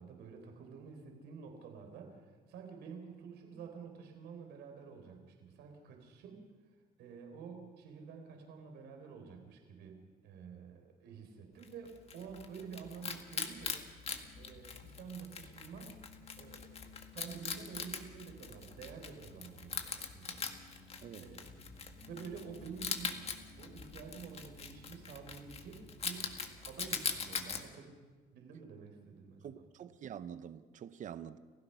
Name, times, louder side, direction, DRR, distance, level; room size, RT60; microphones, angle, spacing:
voice 1, 0.0-6.4 7.0-13.8 14.4-16.0 16.3-21.7 22.0-23.3 23.6-27.9 28.3-29.6, right 6 dB, 80° right, 4.0 m, -49 dB
Wild animals, 11.6-27.6, left 5 dB, 35° left, 1.9 m, -42 dB
Piano, 14.1-26.6, left 3 dB, 75° left, 5.8 m, -59 dB
voice 2, 29.4-31.4, right 9 dB, 50° right, 0.8 m, -46 dB
29.5 x 15.5 x 5.7 m
cardioid pair, 110°, 17 cm